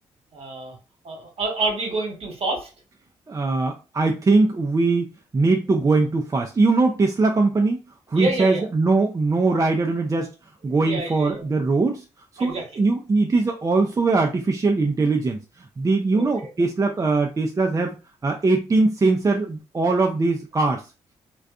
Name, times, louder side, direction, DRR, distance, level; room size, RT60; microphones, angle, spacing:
voice 1, 0.3-0.8 1.0-2.7 8.1-8.7 10.8-11.4 12.4-12.7 16.1-16.5, right 2 dB, 55° right, 1 dB, 1.1 m, -28 dB
voice 2, 3.3-5.1 5.3-7.8 8.1-10.3 10.6-12.0 12.3-15.4 15.8-18.0 18.2-20.8, right 3 dB, 30° right, 3 dB, 0.4 m, -21 dB
2.4 x 2.3 x 2.4 m, 0.30 s
supercardioid pair, 50°, 12 cm